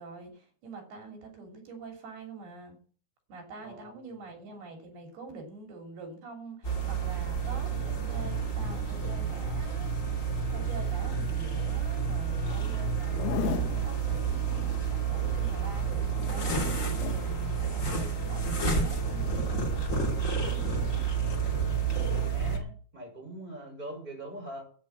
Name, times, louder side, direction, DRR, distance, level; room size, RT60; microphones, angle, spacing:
voice 1, 0.0-2.8 3.3-9.9 10.5-14.5 14.9-21.2, right 3 dB, 85° right, 2 dB, 5.1 m, -45 dB
voice 2, 3.6-4.1 22.1-24.6, right 1 dB, 10° right, 0 dB, 6.0 m, -43 dB
sound 1, 6.6-22.6, right 5 dB, 25° left, 2.0 m, -30 dB
Zipper (clothing), 13.0-13.8 15.9-17.2 19.1-19.4, left 11 dB, 85° left, 2.9 m, -36 dB
10.5 x 9.0 x 7.5 m, 0.43 s
omnidirectional pair, 4.4 m